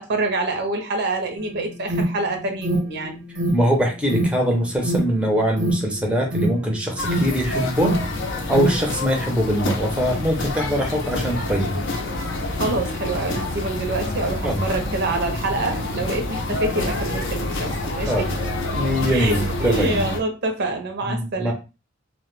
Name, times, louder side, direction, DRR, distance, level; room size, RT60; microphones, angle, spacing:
voice 1, 0.0-3.2 12.6-18.3 19.1-21.5, right 2 dB, 60° right, 5 dB, 0.6 m, -26 dB
Alarm, 1.4-8.8, right 1 dB, 90° right, 0.8 m, -27 dB
voice 2, 3.5-8.0 8.5-11.8 14.4-14.6 18.1-18.3 18.7-20.0 21.1-21.5, equal, 5° right, 0 dB, 0.5 m, -22 dB
sound 1, 7.0-20.2, left 2 dB, 65° left, 0.5 m, -27 dB
2.1 x 2.1 x 3.0 m, 0.30 s
head